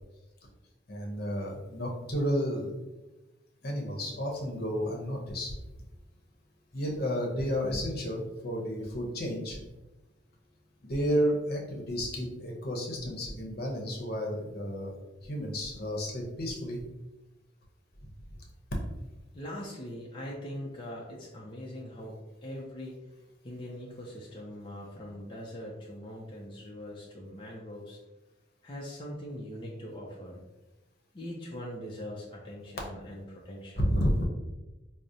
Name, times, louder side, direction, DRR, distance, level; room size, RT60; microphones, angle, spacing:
voice 1, 0.9-2.7 3.6-5.5 6.7-9.6 10.8-14.9 15.2-16.8 33.8-34.3, equal, 60° left, 0 dB, 0.8 m, -31 dB
voice 2, 19.3-23.0 23.4-28.0 28.6-30.4 31.1-33.8, equal, 30° left, -4 dB, 0.5 m, -42 dB
4.8 x 2.0 x 2.7 m, 1.0 s
head